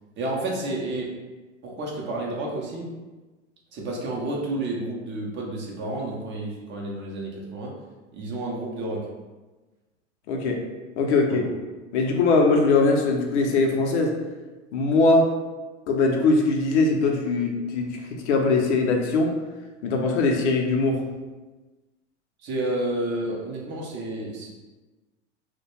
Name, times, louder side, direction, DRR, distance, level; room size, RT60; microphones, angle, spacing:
voice 1, 0.2-1.2 1.6-2.9 3.7-7.7 8.1-9.1 11.3-11.5 22.4-24.5, right 2 dB, 30° right, -2 dB, 0.6 m, -30 dB
voice 2, 10.3-10.6 11.0-11.5 11.9-14.2 14.7-15.3 15.9-19.3 19.8-21.0, left 3 dB, 65° left, 2 dB, 0.6 m, -21 dB
2.3 x 2.1 x 2.9 m, 1.2 s
hypercardioid pair, 90°, 37 cm